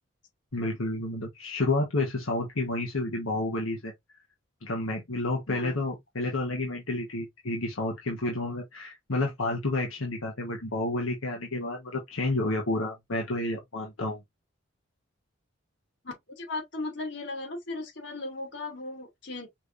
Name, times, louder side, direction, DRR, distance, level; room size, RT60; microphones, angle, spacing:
voice 1, 0.5-3.9 4.6-14.2, left 2 dB, 85° left, 1.5 m, -30 dB
voice 2, 5.5-5.8 16.0-19.5, left 2 dB, 60° left, 2.8 m, -37 dB
6.0 x 3.2 x 2.7 m
head